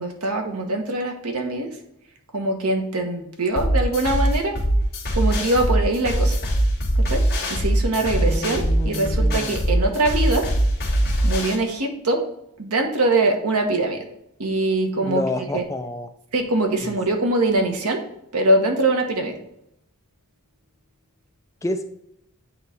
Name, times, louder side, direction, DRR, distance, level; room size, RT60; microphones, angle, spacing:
voice 1, 0.0-1.7 2.3-4.6 5.1-6.4 7.0-7.2 7.5-10.5 11.2-12.3 12.6-14.0 14.4-15.2 15.5-15.6 16.3-18.0 18.3-19.4, right 2 dB, 80° right, 3 dB, 1.2 m, -22 dB
sound 1, 3.6-11.6, right 1 dB, 45° left, 1.6 m, -21 dB
voice 2, 8.1-9.6 15.0-16.1 16.8-16.9 21.6-21.8, left 1 dB, 15° left, 7 dB, 0.4 m, -29 dB
8.8 x 3.2 x 4.1 m, 0.78 s
head